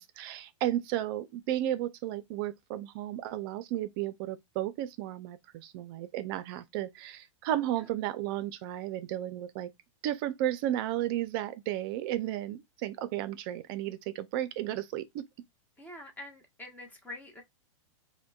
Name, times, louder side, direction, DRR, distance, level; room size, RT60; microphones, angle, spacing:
voice 1, 0.0-9.7 10.0-15.3, right 13 dB, 45° right, 0.5 m, -33 dB
voice 2, 15.8-17.4, left 2 dB, 10° left, 0.9 m, -45 dB
4.8 x 2.2 x 2.3 m
hypercardioid pair, 135°, 17 cm